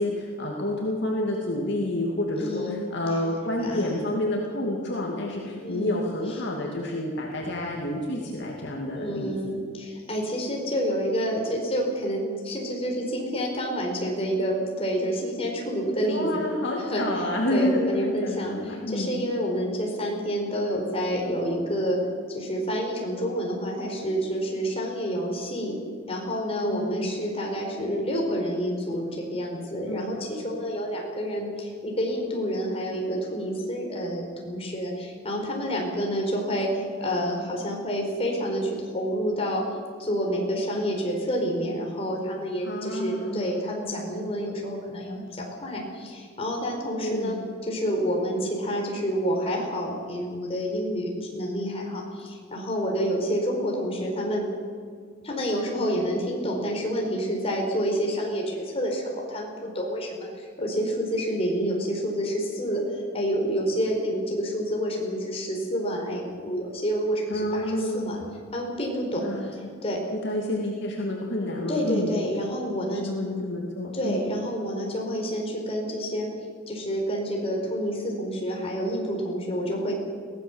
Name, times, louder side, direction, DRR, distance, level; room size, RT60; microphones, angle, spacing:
voice 1, 0.0-9.6 16.0-19.1 26.6-27.1 29.9-30.2 42.6-43.5 47.0-47.4 67.3-68.2 69.2-69.6 70.1-72.1 72.9-74.2, left 1 dB, 55° left, -1 dB, 2.6 m, -29 dB
voice 2, 2.4-2.8 3.6-4.3 5.6-6.0 8.9-16.4 16.9-17.0 17.5-22.0 22.3-25.8 26.1-39.7 40.0-47.4 47.6-54.5 55.2-68.2 68.5-70.1 71.7-73.1 73.9-76.3 76.7-79.9, equal, 25° left, 0 dB, 4.4 m, -28 dB
22.5 x 16.5 x 7.3 m, 2.1 s
head